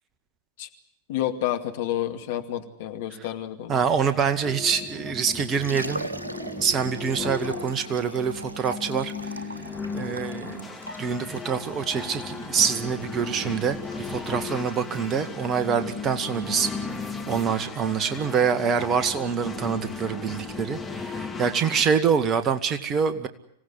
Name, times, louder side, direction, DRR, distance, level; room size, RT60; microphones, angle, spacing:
voice 1, 1.1-3.8, left 12 dB, 50° left, 6 dB, 2.3 m, -29 dB
voice 2, 3.7-6.1 6.6-9.4 9.9-10.7 11.0-16.7 17.3-23.3, right 6 dB, 30° right, 10 dB, 2.0 m, -25 dB
sound 1, 3.8-21.8, left 4 dB, 10° left, 2.9 m, -36 dB
Liquid, 5.1-22.5, right 1 dB, 80° right, 1.7 m, -42 dB
26.0 x 17.5 x 9.5 m, 0.74 s
figure-of-eight pair, 90°, 0 cm